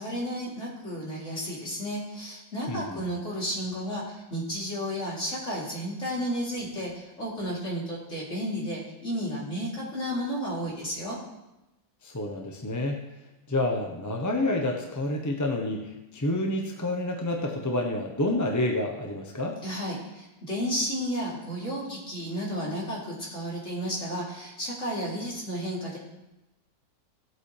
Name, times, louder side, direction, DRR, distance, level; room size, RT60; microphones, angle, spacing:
voice 1, 0.0-11.2 19.6-26.0, equal, 40° left, -6 dB, 3.7 m, -32 dB
voice 2, 2.7-3.0 12.0-13.0 13.5-19.6, left 1 dB, 15° left, 1 dB, 0.7 m, -29 dB
17.0 x 7.7 x 3.4 m, 0.98 s
omnidirectional pair, 1.9 m